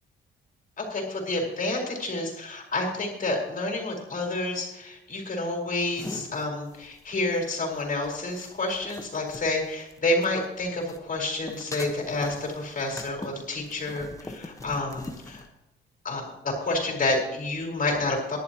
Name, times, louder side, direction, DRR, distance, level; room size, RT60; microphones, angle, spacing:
voice 1, 0.8-15.4 16.0-18.4, left 2 dB, 45° left, 1 dB, 4.6 m, -29 dB
sound 1, 6.0-10.5 10.8-15.5, left 2 dB, 15° left, 1.3 m, -42 dB
19.0 x 11.5 x 3.0 m, 0.88 s
cardioid pair, 90°, 20 cm